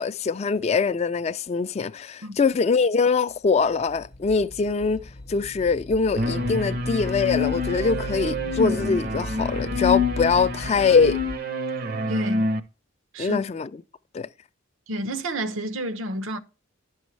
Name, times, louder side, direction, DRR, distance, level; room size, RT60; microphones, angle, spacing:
voice 1, 0.0-11.2 13.2-13.7 14.1-14.3, left 5 dB, 35° left, 0.3 m, -23 dB
sound 1, 3.6-11.4, left 1 dB, 50° left, 0.7 m, -37 dB
sound 2, 6.2-12.6, left 2 dB, 50° right, 0.6 m, -27 dB
voice 2, 12.1-12.5 13.1-13.4 14.9-16.4, equal, 85° right, 0.8 m, -29 dB
10.5 x 6.2 x 3.2 m
head